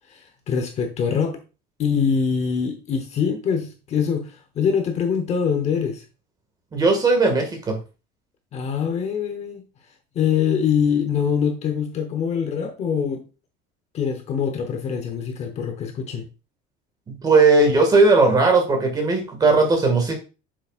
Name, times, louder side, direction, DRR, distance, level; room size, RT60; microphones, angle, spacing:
voice 1, 0.1-1.4 1.8-6.0 8.5-9.6 10.1-13.3 13.9-16.3, left 7 dB, 30° left, 0.9 m, -24 dB
voice 2, 6.7-7.8 17.1-20.1, right 3 dB, 20° right, 1.8 m, -17 dB
8.0 x 6.2 x 2.4 m
cardioid pair, 170°, 21 cm